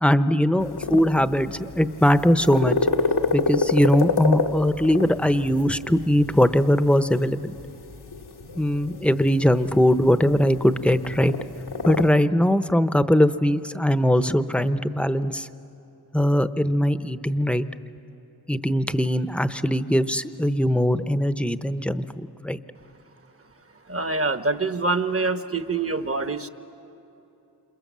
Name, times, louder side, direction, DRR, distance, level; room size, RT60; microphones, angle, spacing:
voice 1, 0.0-2.8 3.3-7.5 8.6-11.3 11.8-15.5 16.1-17.7 18.5-22.1 22.4-22.6, equal, 5° left, 11 dB, 0.8 m, -21 dB
sound 1, 0.6-12.1, left 4 dB, 80° left, 1.5 m, -29 dB
voice 2, 23.9-26.5, right 3 dB, 35° right, 9 dB, 1.2 m, -25 dB
28.0 x 27.0 x 7.5 m, 2.9 s
cardioid pair, 45°, 40 cm